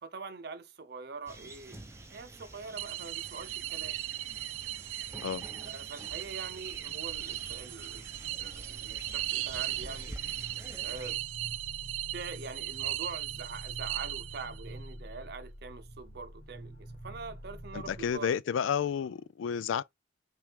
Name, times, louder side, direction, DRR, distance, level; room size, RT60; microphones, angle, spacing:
voice 1, 0.0-1.8 2.1-4.0 5.6-8.1 8.4-10.2 10.8-11.2 12.1-18.4, right 4 dB, 55° right, 0.6 m, -44 dB
sound 1, 1.3-11.2, right 2 dB, 15° right, 0.6 m, -48 dB
sound 2, 2.8-14.7, right 16 dB, 85° right, 0.3 m, -38 dB
sound 3, 9.4-18.2, right 1 dB, 45° left, 2.5 m, -47 dB
voice 2, 17.7-19.8, left 7 dB, 85° left, 0.3 m, -31 dB
5.8 x 2.5 x 3.4 m
head